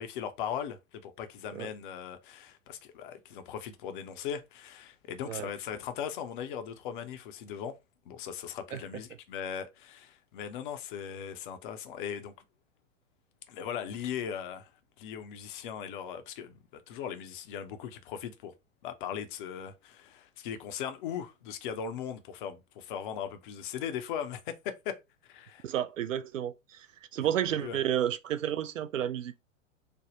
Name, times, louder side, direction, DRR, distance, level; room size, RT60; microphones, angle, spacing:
voice 1, 0.0-7.7 8.1-12.3 13.5-14.7 15.0-18.5 18.8-25.0 25.2-25.6 27.2-27.8, left 8 dB, 40° left, 0.6 m, -39 dB
voice 2, 25.6-26.9 27.1-29.4, right 10 dB, 70° right, 0.5 m, -31 dB
3.4 x 2.0 x 3.7 m
figure-of-eight pair, 100°, 39 cm